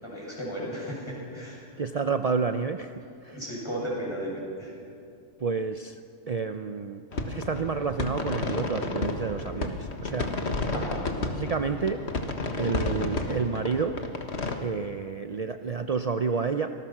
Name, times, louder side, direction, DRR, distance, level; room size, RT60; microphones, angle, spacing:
voice 1, 0.0-1.6 3.3-4.7 10.7-11.1, equal, 20° left, -4 dB, 7.4 m, -34 dB
voice 2, 1.8-3.4 5.4-6.0 6.3-10.4 11.2-12.0 12.6-14.0 14.6-16.7, right 5 dB, 50° right, 8 dB, 0.4 m, -30 dB
sound 1, 7.1-14.6, left 3 dB, 50° left, 1.8 m, -31 dB
26.0 x 19.5 x 6.0 m, 2.4 s
omnidirectional pair, 1.4 m